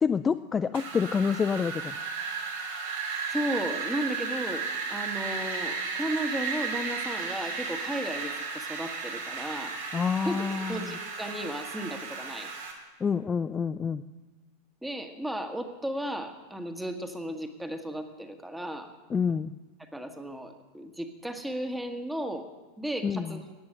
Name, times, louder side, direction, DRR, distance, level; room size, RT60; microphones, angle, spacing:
voice 1, 0.0-1.9 9.9-11.0 13.0-14.0 19.1-19.6 23.0-23.4, left 6 dB, 20° left, 11 dB, 0.3 m, -27 dB
Wind, 0.7-12.7, right 5 dB, 70° right, 2.7 m, -34 dB
voice 2, 3.3-9.8 10.2-12.5 14.8-18.9 19.9-22.5 22.8-23.4, right 1 dB, 5° right, 6 dB, 1.4 m, -35 dB
14.5 x 9.5 x 6.6 m, 1.2 s
figure-of-eight pair, 90°, 0 cm